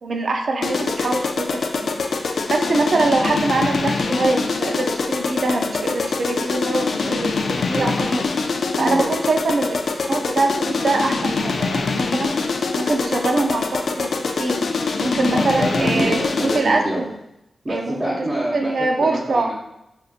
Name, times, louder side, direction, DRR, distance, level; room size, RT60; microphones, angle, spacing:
voice 1, 0.0-2.0 2.5-8.2 8.8-12.3 12.7-14.1 14.4-14.6 15.0-17.1 17.7-18.1 18.5-19.5, right 2 dB, 70° right, 3 dB, 0.4 m, -23 dB
sound 1, 0.6-16.8, left 4 dB, 75° left, 0.3 m, -24 dB
voice 2, 7.7-8.0 8.8-9.0 15.3-17.1 17.6-19.5, right 1 dB, 30° right, -8 dB, 1.0 m, -26 dB
5.1 x 2.6 x 2.4 m, 0.84 s
wide cardioid pair, 85°, 0 cm